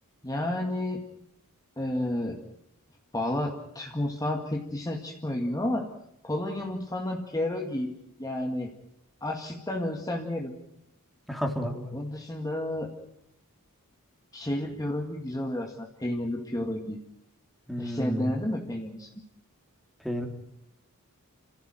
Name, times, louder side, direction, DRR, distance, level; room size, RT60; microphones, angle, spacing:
voice 1, 0.2-1.0 1.8-2.4 3.1-5.9 6.2-7.9 8.2-8.7 9.2-10.5 11.9-12.9 14.3-17.0 17.8-19.1, left 1 dB, 15° left, 1 dB, 2.0 m, -31 dB
voice 2, 11.3-11.9 17.7-18.3 20.0-20.3, equal, ahead, 2 dB, 3.4 m, -31 dB
29.5 x 15.5 x 9.1 m, 0.81 s
head